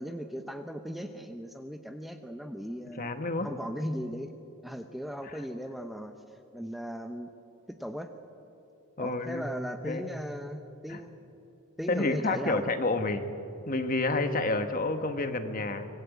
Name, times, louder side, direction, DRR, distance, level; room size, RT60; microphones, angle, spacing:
voice 1, 0.0-3.2 3.4-4.3 4.6-6.1 6.5-7.3 7.7-8.1 9.0-11.2 11.8-12.6, equal, ahead, 6 dB, 0.8 m, -37 dB
voice 2, 3.0-3.5 9.0-9.5 9.8-10.0 10.9-11.0 11.9-13.3 13.7-15.9, left 2 dB, 40° left, 7 dB, 1.4 m, -29 dB
25.5 x 20.0 x 8.4 m, 2.8 s
head